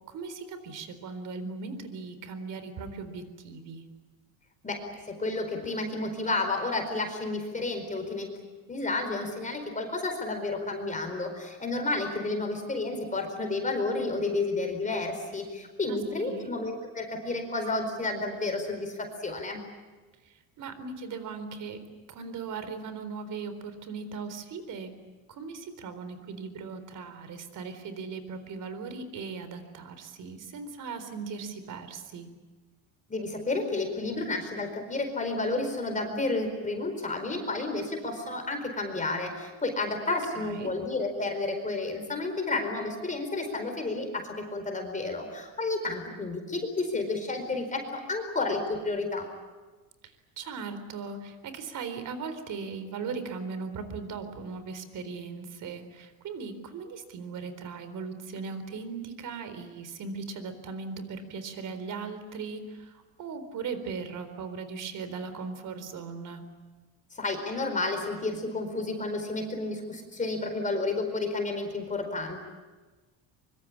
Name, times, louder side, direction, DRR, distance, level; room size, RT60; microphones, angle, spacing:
voice 1, 0.1-3.8 15.9-16.5 20.2-21.8 22.1-24.9 25.3-32.3 40.4-40.7 50.4-66.4, right 5 dB, 50° right, 10 dB, 4.1 m, -38 dB
voice 2, 4.6-8.3 8.7-19.6 33.1-49.3 67.1-72.4, left 2 dB, 20° left, 4 dB, 4.6 m, -31 dB
24.5 x 24.0 x 8.7 m, 1.3 s
cardioid pair, 125°, 40 cm